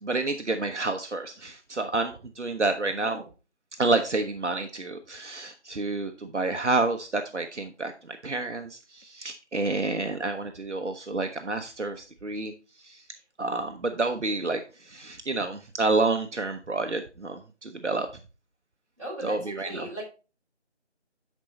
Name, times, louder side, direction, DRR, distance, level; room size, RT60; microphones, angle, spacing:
voice 1, 0.0-3.2 3.8-12.5 12.8-13.0 13.4-18.1 19.2-19.9, right 3 dB, 80° right, 6 dB, 1.0 m, -29 dB
voice 2, 19.0-20.0, right 1 dB, 30° right, -7 dB, 5.4 m, -37 dB
10.5 x 4.6 x 4.1 m, 0.33 s
figure-of-eight pair, 175°, 35 cm